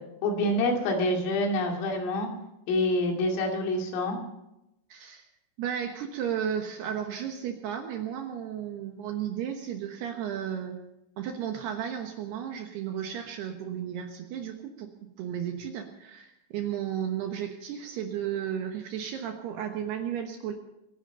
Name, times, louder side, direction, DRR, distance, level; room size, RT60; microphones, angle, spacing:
voice 1, 0.2-2.3 2.7-4.2, left 1 dB, 80° left, 2 dB, 5.1 m, -26 dB
voice 2, 4.9-5.3 5.6-10.8 11.2-14.9 15.2-20.5, right 9 dB, 70° right, 4 dB, 2.7 m, -34 dB
24.0 x 11.0 x 5.5 m, 0.90 s
omnidirectional pair, 5.9 m